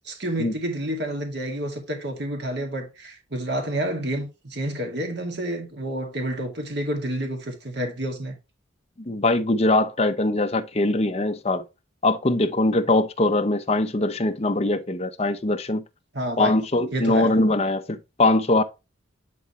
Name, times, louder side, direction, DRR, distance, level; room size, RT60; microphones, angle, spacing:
voice 1, 0.0-8.4 16.1-16.6 16.9-17.3, right 1 dB, 55° right, 2.2 m, -29 dB
voice 2, 9.0-11.6 12.0-15.8 16.4-18.6, left 2 dB, 30° left, 0.7 m, -22 dB
10.0 x 4.1 x 3.1 m
head